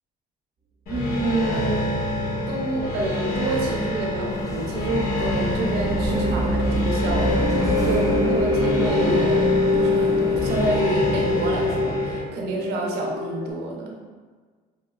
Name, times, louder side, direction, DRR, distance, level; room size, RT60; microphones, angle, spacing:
sound 1, 0.9-12.2, left 1 dB, 60° left, 1.2 m, -27 dB
voice 1, 0.9-1.9 2.5-14.1, right 2 dB, 75° right, -1 dB, 0.6 m, -28 dB
sound 2, 4.1-13.5, left 2 dB, 35° right, 0.6 m, -25 dB
sound 3, 4.3-10.7, left 1 dB, 20° left, 0.5 m, -38 dB
3.6 x 2.0 x 2.3 m, 1.5 s
cardioid pair, 110°, 17 cm